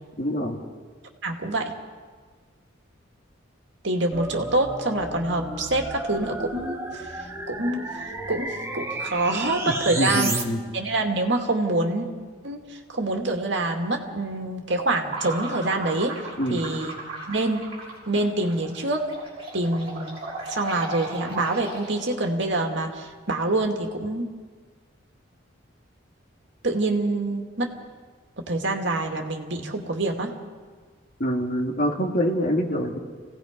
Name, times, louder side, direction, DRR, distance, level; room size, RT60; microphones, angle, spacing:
voice 1, 0.2-0.6 9.7-10.6 16.4-16.6 31.2-33.0, equal, 45° left, 1 dB, 2.4 m, -25 dB
voice 2, 1.2-1.7 3.8-7.0 7.5-10.3 10.7-12.1 12.4-12.6 12.9-16.2 16.5-16.9 17.3-17.6 18.1-19.1 19.5-20.2 20.5-24.3 26.6-27.7 28.4-30.3, right 2 dB, 65° right, 2 dB, 2.3 m, -26 dB
sound 1, 4.1-10.4, right 2 dB, 15° right, 1.4 m, -33 dB
sound 2, 15.0-22.3, right 2 dB, 30° right, 6.3 m, -37 dB
29.0 x 17.5 x 5.2 m, 1.5 s
head